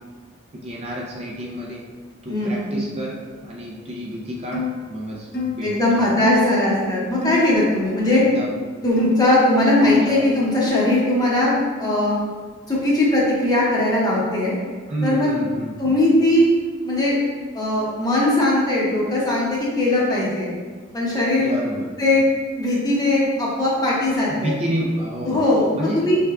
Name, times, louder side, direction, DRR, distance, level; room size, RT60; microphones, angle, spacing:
voice 1, 0.5-1.9 2.2-4.6 4.9-5.3 5.5-6.2 8.1-8.6 9.8-10.2 14.9-16.0 21.4-21.9 24.3-25.4 25.7-26.0, equal, 30° right, -3 dB, 0.4 m, -30 dB
voice 2, 2.2-2.9 5.6-8.2 8.8-11.5 11.8-12.1 12.7-14.6 15.0-15.3 15.8-16.5 16.8-17.2 17.5-20.5 20.9-21.5 22.0-22.3 22.5-24.5 25.2-26.2, left 1 dB, 20° left, -5 dB, 0.8 m, -19 dB
sound 1, 4.5-4.8 5.3-5.6 6.2-6.4 7.2-7.5 8.1-8.4 9.0-9.2 9.8-10.1 10.7-11.0, left 5 dB, 50° left, 0.6 m, -26 dB
4.7 x 3.4 x 2.3 m, 1.5 s
head